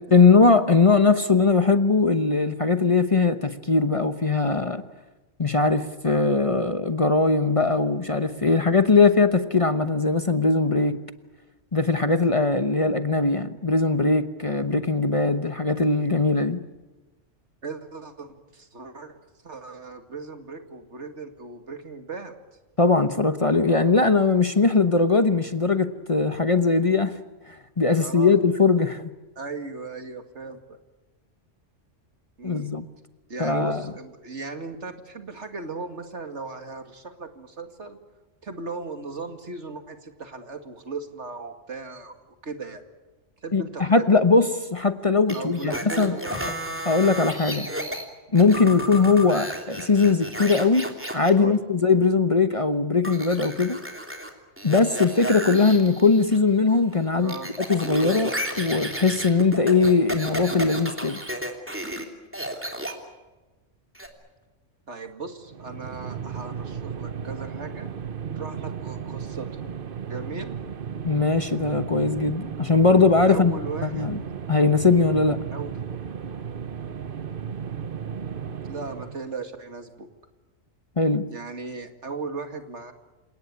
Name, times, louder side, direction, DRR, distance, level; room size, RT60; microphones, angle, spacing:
voice 1, 0.1-4.8 5.4-11.0 11.7-16.6 22.8-27.1 27.8-29.0 32.4-32.8 33.4-33.8 43.5-46.2 46.9-47.7 48.3-50.9 51.1-53.8 54.6-57.3 57.7-61.2 71.0-73.5 73.8-74.2 74.5-75.4 81.0-81.3, left 4 dB, 30° left, 10 dB, 1.0 m, -20 dB
voice 2, 17.6-19.2 19.4-22.3 27.9-28.4 29.4-30.8 32.4-32.7 33.3-38.0 38.4-42.8 43.4-44.1 45.3-46.6 47.7-47.9 51.4-51.6 57.2-57.5 64.9-67.9 68.4-69.7 70.1-70.6 73.3-74.1 75.5-75.7 78.6-80.1 81.3-82.9, right 4 dB, 70° right, 7 dB, 2.5 m, -37 dB
sound 1, 45.3-48.0 48.4-51.3 53.0-54.3 54.6-56.4 56.7-62.0 62.3-62.9 63.9-64.1, equal, 10° right, 3.1 m, -32 dB
sound 2, 65.5-79.3, right 7 dB, 50° right, 1.1 m, -35 dB
28.5 x 18.5 x 9.6 m, 1.2 s
omnidirectional pair, 1.2 m